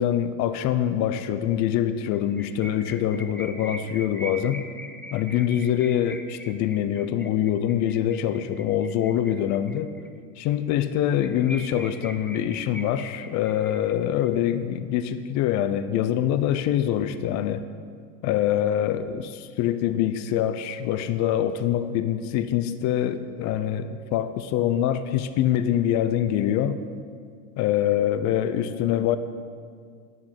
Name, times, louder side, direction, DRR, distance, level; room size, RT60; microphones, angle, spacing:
voice 1, 0.0-4.6 5.1-9.9 10.4-17.6 18.2-26.8 27.6-29.2, left 10 dB, 45° left, 11 dB, 0.7 m, -24 dB
sound 1, 2.1-10.1 10.4-10.5 10.8-10.9 11.2-14.3, equal, 5° left, 0.6 m, -42 dB
11.0 x 7.4 x 9.3 m, 2.1 s
supercardioid pair, 130°, 41 cm